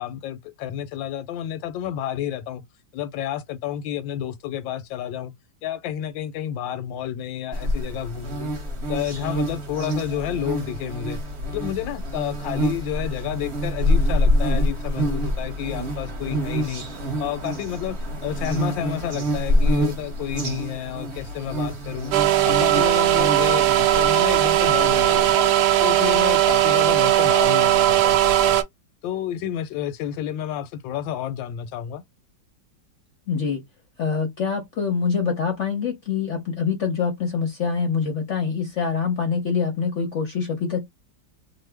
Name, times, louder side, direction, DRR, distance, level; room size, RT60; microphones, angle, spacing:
voice 1, 0.0-2.6 2.9-5.3 5.6-8.5 8.9-11.2 11.5-16.8 17.2-18.0 18.2-22.2 22.4-25.5 25.8-28.6 29.0-32.0, left 10 dB, 85° left, 1.3 m, -30 dB
sound 1, 7.5-25.3, equal, 45° right, 1.0 m, -26 dB
sound 2, 22.1-28.6, right 13 dB, 75° right, 1.1 m, -18 dB
voice 2, 33.3-33.6 34.0-40.9, left 5 dB, 60° left, 0.7 m, -25 dB
3.0 x 2.1 x 3.3 m
omnidirectional pair, 2.0 m